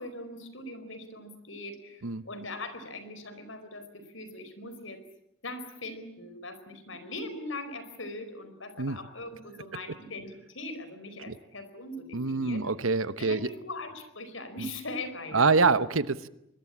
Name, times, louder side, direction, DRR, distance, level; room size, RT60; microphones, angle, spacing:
voice 1, 0.0-5.0 5.4-12.7 13.1-15.6, left 2 dB, 75° left, 10 dB, 4.6 m, -41 dB
voice 2, 12.1-13.5 15.3-16.3, right 4 dB, 90° right, 14 dB, 1.1 m, -25 dB
25.0 x 22.0 x 8.7 m, 0.81 s
head